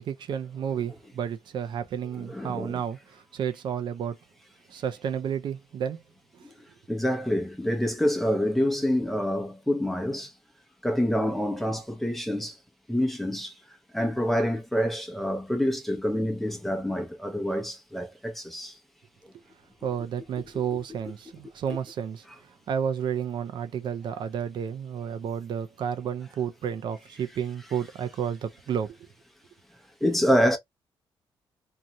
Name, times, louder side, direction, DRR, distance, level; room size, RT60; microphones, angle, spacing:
voice 1, 0.0-4.2 4.7-6.0 19.8-22.3 22.7-29.0, right 8 dB, 65° right, 0.5 m, -31 dB
voice 2, 2.2-2.8 6.4-6.5 6.9-10.3 10.8-12.5 12.9-13.5 13.9-18.7 30.0-30.6, equal, ahead, 0.8 m, -27 dB
2.7 x 2.4 x 2.8 m
cardioid pair, 115°, 9 cm